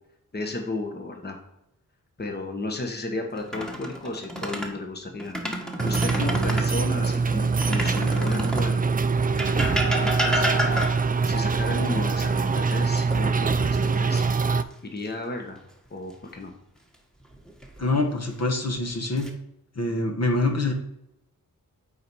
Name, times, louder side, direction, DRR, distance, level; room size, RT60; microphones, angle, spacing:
voice 1, 0.3-1.4 2.2-5.3 5.8-8.9 9.5-10.5 11.3-14.2 14.8-15.6 15.9-16.5, left 2 dB, 30° left, 3 dB, 1.2 m, -33 dB
sound 1, 3.4-4.7 5.2-6.7 7.6-8.7 9.4-11.2 13.1-13.8 14.2-14.4 17.3-17.9 18.7-19.3, equal, ahead, 1.3 m, -29 dB
sound 2, 5.8-14.6, right 4 dB, 25° right, 0.4 m, -24 dB
voice 2, 17.8-19.3 19.7-20.7, left 2 dB, 45° left, 3 dB, 1.3 m, -25 dB
8.8 x 4.2 x 4.6 m, 0.84 s
cardioid pair, 70°, 35 cm